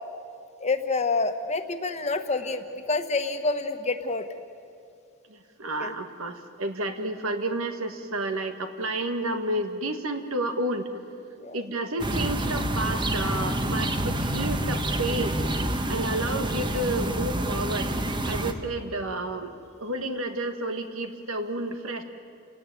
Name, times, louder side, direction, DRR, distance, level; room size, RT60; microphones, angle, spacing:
voice 1, 0.6-4.2 5.6-5.9 11.4-11.6, left 3 dB, 30° left, 7 dB, 1.3 m, -28 dB
voice 2, 5.3-10.9 11.5-15.4 15.9-17.9 18.3-19.5 19.8-22.0, right 1 dB, 80° right, 7 dB, 1.8 m, -30 dB
sound 1, 12.0-18.5, right 1 dB, 20° right, 1.2 m, -28 dB
29.5 x 18.0 x 9.2 m, 2.4 s
head